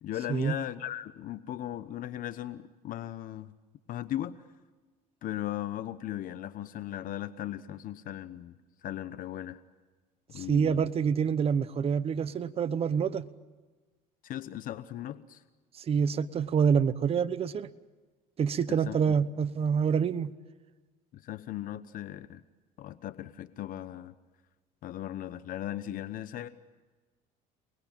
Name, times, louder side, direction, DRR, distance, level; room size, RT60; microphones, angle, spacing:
voice 1, 0.0-3.5 3.9-4.4 5.2-9.6 10.3-10.9 14.2-15.4 18.7-19.0 21.1-22.4 22.8-24.1 24.8-26.5, left 12 dB, 55° left, 1.0 m, -37 dB
voice 2, 10.4-13.3 15.8-17.7 18.4-20.3, right 7 dB, 35° right, 1.0 m, -27 dB
29.5 x 20.5 x 8.9 m
cardioid pair, 115°, 17 cm